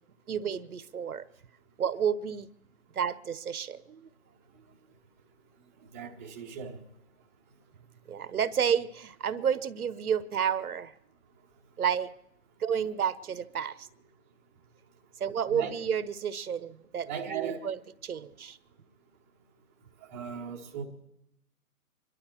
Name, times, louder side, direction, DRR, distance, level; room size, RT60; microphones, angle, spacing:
voice 1, 0.3-1.2 1.8-2.5 2.9-4.1 8.1-10.9 11.8-12.1 12.6-13.9 15.2-18.6, right 8 dB, 75° right, 14 dB, 1.0 m, -31 dB
voice 2, 5.9-6.8 15.5-15.7 17.1-17.6 20.0-20.8, right 7 dB, 10° right, -3 dB, 0.9 m, -37 dB
25.5 x 12.0 x 4.4 m, 0.86 s
hypercardioid pair, 165°, 44 cm